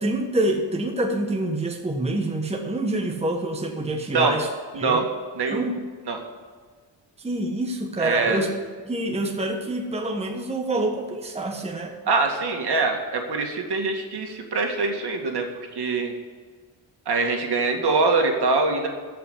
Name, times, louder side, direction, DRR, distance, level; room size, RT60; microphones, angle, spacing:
voice 1, 0.0-4.5 4.8-5.0 5.5-5.8 7.2-8.5 8.9-11.9, right 1 dB, 15° right, 2 dB, 1.3 m, -26 dB
voice 2, 4.7-5.1 5.3-5.6 6.1-6.2 8.0-8.4 12.1-15.5 15.8-16.1 17.1-18.9, right 3 dB, 55° right, 2 dB, 2.4 m, -23 dB
13.5 x 5.8 x 8.2 m, 1.5 s
cardioid pair, 90°, 47 cm